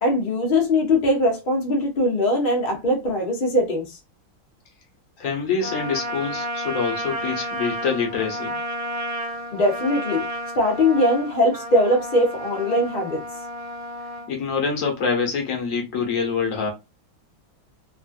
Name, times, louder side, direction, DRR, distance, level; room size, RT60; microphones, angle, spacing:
voice 1, 0.0-3.9 9.5-10.2 10.6-13.2, left 1 dB, 65° left, 0.4 m, -21 dB
voice 2, 5.2-8.5 14.3-16.7, left 5 dB, 50° left, 1.1 m, -25 dB
Trumpet, 5.6-14.3, equal, 35° right, 0.6 m, -32 dB
3.5 x 2.5 x 2.4 m
omnidirectional pair, 2.3 m